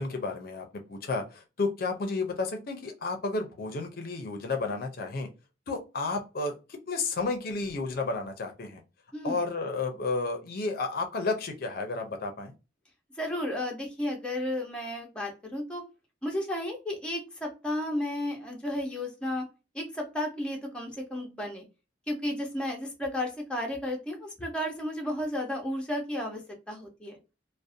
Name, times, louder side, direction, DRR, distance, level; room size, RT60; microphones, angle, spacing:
voice 1, 0.0-5.3 5.7-6.5 6.9-8.8 9.2-12.5, left 3 dB, 50° left, 4 dB, 0.5 m, -32 dB
voice 2, 13.2-15.8 16.2-19.4 19.7-21.6 22.1-26.4 26.7-27.2, left 1 dB, 5° left, 0 dB, 0.6 m, -33 dB
2.5 x 2.0 x 2.5 m, 0.29 s
head